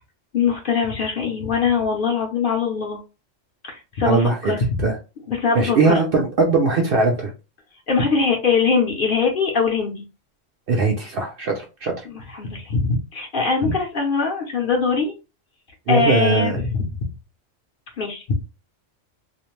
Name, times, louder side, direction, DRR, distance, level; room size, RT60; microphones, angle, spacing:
voice 1, 0.3-3.0 3.6-4.6 5.3-6.0 7.9-10.0 12.1-15.1 15.9-17.0 18.0-18.5, left 5 dB, 50° left, 0 dB, 0.7 m, -22 dB
voice 2, 4.0-4.5 4.8-5.0 5.5-7.3 10.7-11.9 15.9-16.6, right 3 dB, 60° right, 1 dB, 0.6 m, -20 dB
2.5 x 2.0 x 3.0 m, 0.30 s
omnidirectional pair, 1.3 m